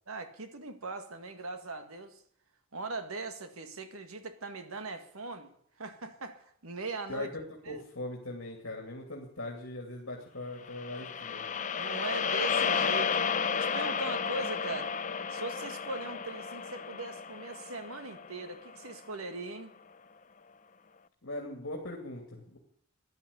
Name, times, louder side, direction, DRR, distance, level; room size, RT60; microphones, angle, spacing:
voice 1, 0.1-2.2 2.7-7.3 7.7-7.8 11.8-13.2 13.5-14.9 15.3-19.7, right 3 dB, 85° right, 8 dB, 1.8 m, -40 dB
voice 2, 7.1-11.4 21.2-22.6, left 2 dB, 65° left, 0 dB, 2.7 m, -40 dB
sound 1, 10.7-19.0, left 6 dB, 35° left, 0.7 m, -32 dB
14.0 x 11.0 x 8.5 m, 0.65 s
head